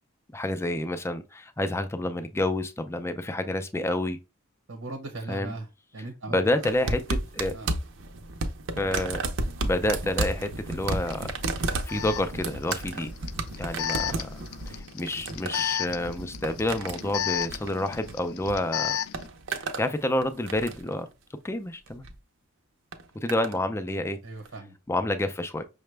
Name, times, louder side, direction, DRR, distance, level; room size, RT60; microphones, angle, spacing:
voice 1, 0.3-4.2 5.3-5.5 6.3-7.5 8.8-9.2 9.6-11.3 11.6-13.1 13.6-14.4 14.7-19.0 19.5-21.1 21.4-22.0 23.2-24.2 24.9-25.6, left 1 dB, 15° left, 0.4 m, -29 dB
voice 2, 4.7-5.7 5.9-7.0 7.5-7.7 24.2-24.8, right 2 dB, 85° right, 1.0 m, -38 dB
sound 1, 6.6-18.6 18.8-19.9 20.2-20.9 21.9-22.1 22.9-23.6 24.5-24.6, right 2 dB, 65° right, 0.6 m, -33 dB
Alarm, 11.1-11.2 11.9-19.3, left 10 dB, 90° left, 0.3 m, -33 dB
5.8 x 2.1 x 3.3 m
head